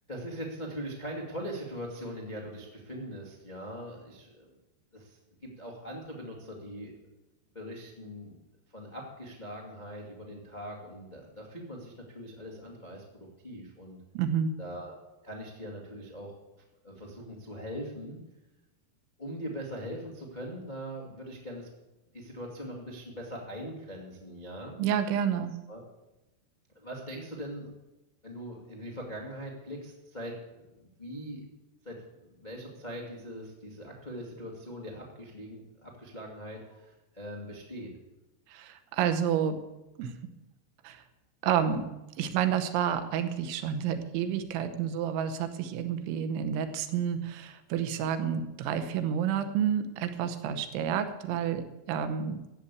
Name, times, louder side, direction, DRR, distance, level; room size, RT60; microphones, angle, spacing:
voice 1, 0.1-4.5 4.9-6.9 7.5-8.4 8.7-14.0 14.6-14.9 15.2-16.3 16.8-18.2 19.2-21.7 22.1-24.8 25.7-25.8 26.7-27.7 28.2-30.3 30.8-31.4 31.8-37.9, equal, 90° left, -2 dB, 0.4 m, -41 dB
voice 2, 14.1-14.5 24.8-25.5 38.5-39.6 40.0-40.1 40.8-41.0 41.4-41.9 42.2-52.4, right 8 dB, 85° right, 9 dB, 3.4 m, -29 dB
13.5 x 8.4 x 8.3 m, 1.0 s
omnidirectional pair, 5.3 m